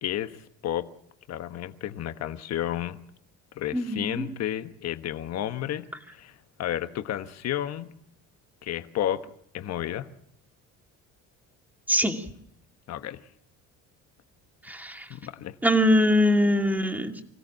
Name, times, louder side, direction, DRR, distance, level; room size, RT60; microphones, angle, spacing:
voice 1, 0.0-0.9 1.3-3.0 3.6-5.9 6.1-7.9 8.6-9.3 9.5-10.1 12.9-13.2 15.1-15.5, left 11 dB, 55° left, 10 dB, 1.3 m, -32 dB
voice 2, 3.7-4.3 11.9-12.2 14.7-15.1 15.6-17.2, left 1 dB, 5° right, 4 dB, 2.4 m, -23 dB
25.5 x 16.5 x 7.5 m, 0.69 s
cardioid pair, 125°, 32 cm